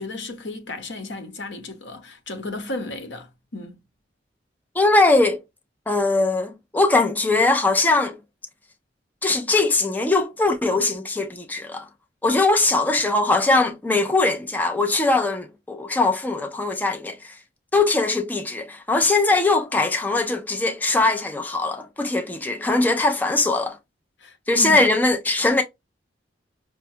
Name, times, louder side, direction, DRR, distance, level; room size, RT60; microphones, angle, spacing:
voice 1, 0.0-3.7 24.2-24.8, left 2 dB, 85° left, 0.9 m, -34 dB
voice 2, 4.8-5.4 5.9-8.2 9.2-11.9 12.2-17.4 17.7-23.8 24.5-25.6, left 3 dB, 10° left, 0.4 m, -21 dB
5.3 x 2.2 x 2.6 m
head